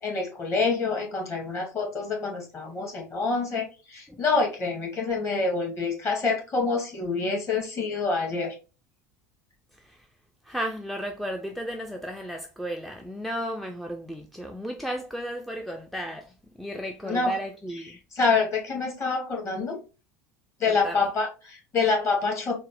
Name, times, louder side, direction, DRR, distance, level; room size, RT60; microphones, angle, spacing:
voice 1, 0.0-8.5 17.0-17.3 18.1-19.8 20.6-22.5, left 4 dB, 35° left, 1.7 m, -26 dB
voice 2, 9.7-10.1 10.4-18.0 20.7-21.1, equal, ahead, 0.4 m, -34 dB
4.0 x 2.0 x 3.4 m
figure-of-eight pair, 70°, 8 cm